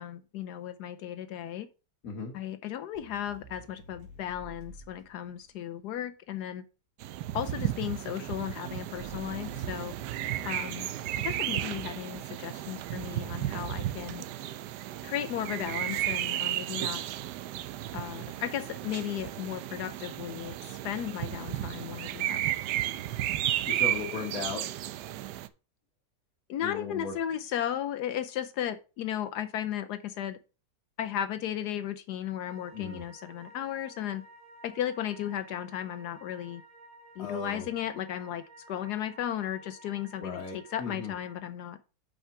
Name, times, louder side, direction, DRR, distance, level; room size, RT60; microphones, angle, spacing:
voice 1, 0.0-1.7 2.3-6.6 7.3-9.9 10.4-10.9 11.2-14.2 15.0-17.0 17.9-22.4 26.5-30.4 31.0-34.2 34.6-36.6 37.2-41.8, left 10 dB, 75° left, 11 dB, 1.2 m, -35 dB
voice 2, 2.0-2.4 10.2-10.5 23.6-24.7 26.6-27.1 32.7-33.0 37.2-37.7 40.2-41.1, left 4 dB, 55° left, 0 dB, 1.7 m, -37 dB
sound 1, 2.9-5.9 8.9-12.4, right 1 dB, 65° right, 2.8 m, -51 dB
sound 2, 7.0-25.5, right 13 dB, 80° right, 1.2 m, -34 dB
sound 3, 32.5-41.3, right 1 dB, 25° right, 1.1 m, -53 dB
5.7 x 5.6 x 5.9 m, 0.33 s
omnidirectional pair, 1.8 m